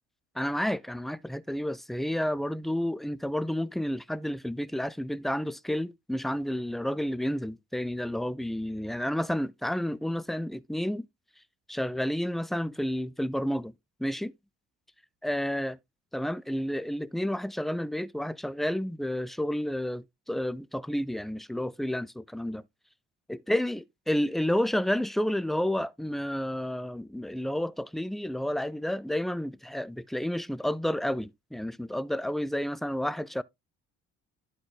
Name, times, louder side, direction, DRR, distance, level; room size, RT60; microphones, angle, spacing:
voice 1, 0.4-11.1 11.7-13.7 14.0-14.3 15.2-15.8 16.1-22.6 23.3-33.4, left 1 dB, ahead, 0.4 m, -30 dB
11.5 x 3.8 x 3.8 m
hypercardioid pair, 55°, 36 cm